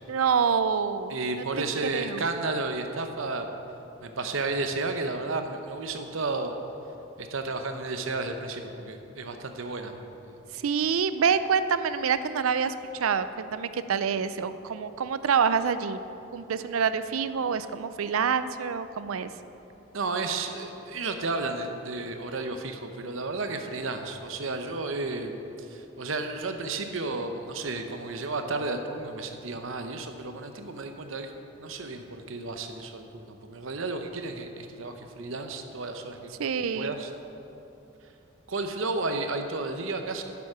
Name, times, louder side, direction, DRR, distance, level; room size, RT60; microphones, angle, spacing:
voice 1, 0.1-1.6 1.9-2.2 10.5-16.0 16.3-19.3 36.4-36.9, right 6 dB, 90° right, 12 dB, 0.4 m, -27 dB
voice 2, 1.1-3.5 4.0-6.5 7.2-9.9 10.2-10.4 19.9-25.4 25.7-31.3 31.6-36.3 36.7-37.1 38.5-40.2, right 3 dB, 75° right, 6 dB, 0.8 m, -32 dB
9.5 x 7.1 x 6.1 m, 2.9 s
head